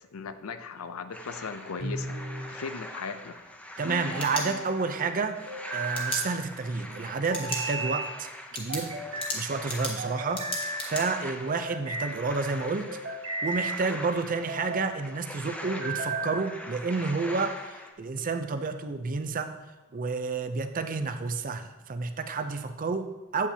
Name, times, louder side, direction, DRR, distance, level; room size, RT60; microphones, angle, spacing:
voice 1, 0.1-2.2 2.5-3.4 9.3-9.4, left 5 dB, 75° left, 10 dB, 0.5 m, -37 dB
sound 1, 1.1-17.9, left 1 dB, 5° left, 0.5 m, -43 dB
sound 2, 1.8-2.5 3.8-4.6 5.5-6.3 7.3-8.1 8.7-9.4 10.0-10.8 11.5-12.1 12.8-13.8 14.3-14.9 15.6-16.4, right 2 dB, 70° right, 2.0 m, -34 dB
sound 3, 3.8-5.0 5.9-6.2 7.2-7.7 8.0-8.1 8.5-11.0, left 2 dB, 25° left, 1.4 m, -35 dB
voice 2, 3.8-5.5 5.7-8.3 8.5-8.9 9.3-10.4 10.8-12.9 13.4-19.5 19.9-23.5, right 4 dB, 40° right, 8 dB, 0.5 m, -30 dB
8.5 x 8.3 x 2.8 m, 1.1 s
head